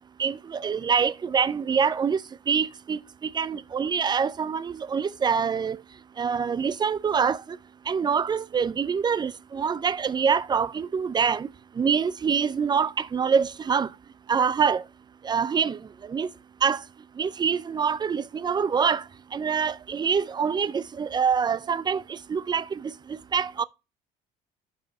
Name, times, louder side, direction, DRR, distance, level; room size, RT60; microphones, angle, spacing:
voice 1, 0.2-2.2 2.5-3.0 3.3-5.8 6.2-7.4 7.9-11.5 11.8-13.9 14.3-14.8 15.2-15.8 16.1-16.3 16.6-16.8 17.2-19.0 19.3-22.9 23.3-23.6, right 6 dB, 25° right, 0.4 m, -25 dB
5.6 x 4.9 x 5.5 m
cardioid pair, 95°, 17 cm